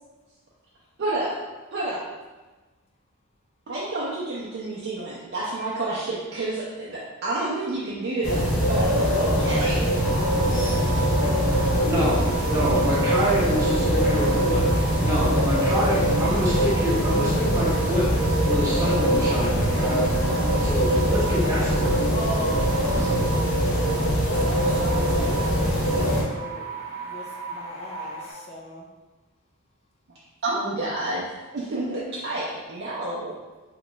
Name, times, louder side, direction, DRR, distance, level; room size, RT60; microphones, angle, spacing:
voice 1, 1.0-1.3 1.7-2.0 3.7-9.8 16.5-16.6 30.4-31.2 31.5-33.4, right 2 dB, 50° right, -7 dB, 0.5 m, -29 dB
sound 1, 8.2-26.2, equal, 65° left, 1.0 m, -22 dB
voice 2, 9.0-13.1 13.8-14.5 22.1-22.7 24.2-28.8, left 1 dB, 30° left, -3 dB, 0.5 m, -39 dB
sound 2, 10.0-28.3, right 4 dB, 90° left, 1.4 m, -36 dB
voice 3, 11.9-12.2 12.5-18.1 18.5-20.1 20.6-22.0, equal, 15° right, -7 dB, 0.9 m, -26 dB
3.1 x 2.3 x 3.8 m, 1.2 s
head